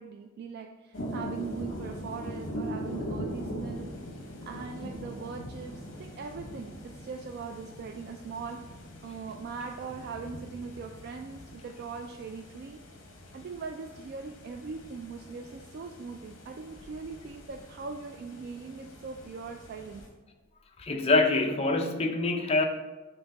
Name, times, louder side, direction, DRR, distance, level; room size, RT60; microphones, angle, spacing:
voice 1, 0.0-3.9 4.2-8.6 9.0-12.8 13.3-20.0, right 5 dB, 50° right, 4 dB, 0.3 m, -40 dB
sound 1, 0.9-20.1, equal, 60° left, 1.0 m, -42 dB
voice 2, 20.8-22.6, left 3 dB, 30° left, 4 dB, 0.5 m, -25 dB
7.0 x 3.5 x 4.0 m, 1.2 s
head